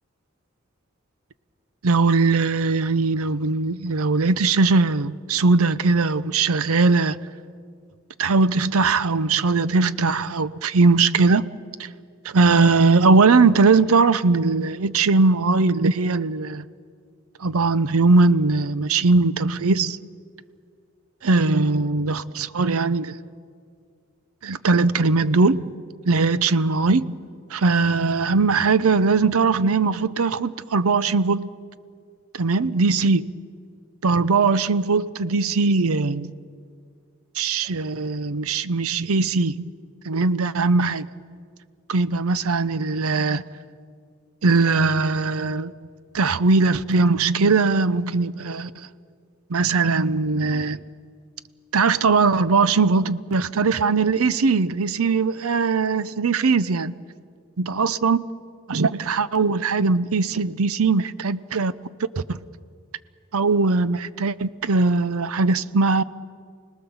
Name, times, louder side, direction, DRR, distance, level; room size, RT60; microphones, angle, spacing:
voice 1, 1.8-7.2 8.2-11.5 11.8-11.9 12.2-16.6 17.4-20.0 21.2-23.2 24.4-25.7 26.0-27.1 27.5-31.5 32.3-33.3 34.0-36.3 37.4-39.7 40.0-41.1 41.9-43.4 44.4-45.7 46.1-48.9 49.5-50.8 51.7-57.0 57.6-58.2 58.7-61.7 62.2-62.4 63.3-66.0, right 4 dB, 80° right, 0.6 m, -20 dB
29.5 x 19.0 x 7.1 m
head